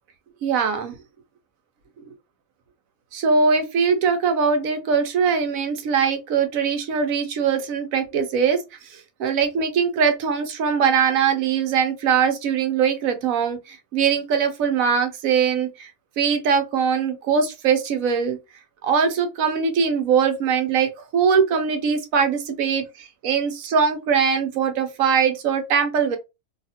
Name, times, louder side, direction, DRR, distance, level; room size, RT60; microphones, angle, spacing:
voice 1, 0.4-1.0 3.1-8.6 8.9-15.9 16.2-18.4 18.8-26.2, right 6 dB, 80° right, 1.1 m, -21 dB
2.7 x 2.4 x 2.7 m
omnidirectional pair, 1.4 m